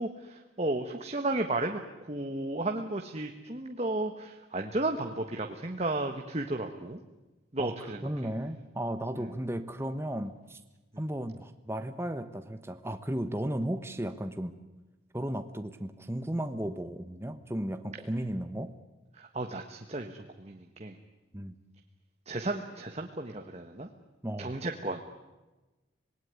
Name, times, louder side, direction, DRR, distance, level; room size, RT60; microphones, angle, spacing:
voice 1, 0.0-1.8 2.1-7.0 7.5-8.0 9.2-9.3 10.9-11.0 19.1-20.9 22.3-23.9 24.4-25.0, right 2 dB, 35° right, 4 dB, 1.3 m, -33 dB
voice 2, 8.0-10.6 11.0-14.5 15.1-18.7 21.3-21.5 24.2-24.6, right 1 dB, 15° right, 8 dB, 1.1 m, -34 dB
26.0 x 19.5 x 9.6 m, 1.1 s
head